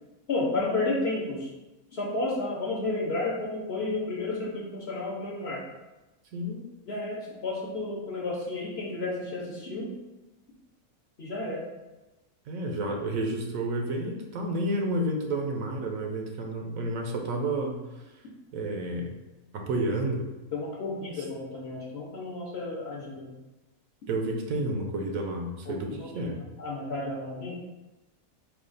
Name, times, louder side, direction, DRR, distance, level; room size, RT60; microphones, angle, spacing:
voice 1, 0.3-1.5 1.9-5.6 6.9-9.9 11.2-11.7 20.5-23.3 25.7-27.5, left 2 dB, 50° left, -3 dB, 0.9 m, -32 dB
voice 2, 6.3-6.7 12.5-17.8 18.5-19.1 19.5-20.2 24.1-26.4, right 1 dB, 70° right, 2 dB, 1.0 m, -30 dB
4.9 x 2.4 x 3.9 m, 1.1 s
omnidirectional pair, 1.5 m